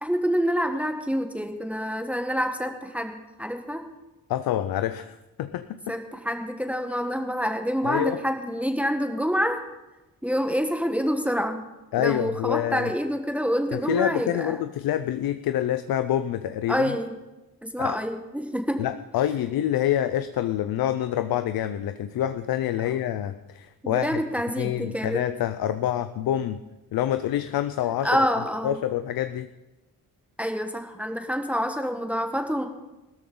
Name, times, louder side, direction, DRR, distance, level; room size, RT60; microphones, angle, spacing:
voice 1, 0.0-3.9 5.9-9.6 10.2-11.7 12.0-14.6 16.7-17.1 17.6-18.8 22.8-23.0 23.8-25.2 28.0-28.8 30.4-32.7, equal, 5° right, 4 dB, 1.3 m, -27 dB
voice 2, 4.3-5.9 7.8-8.2 11.9-12.9 13.7-16.9 17.8-18.0 18.8-24.1 24.6-26.6 26.9-28.3 28.6-29.5, left 11 dB, 80° left, 11 dB, 0.6 m, -27 dB
16.5 x 13.5 x 3.9 m, 1.0 s
cardioid pair, 105°, 36 cm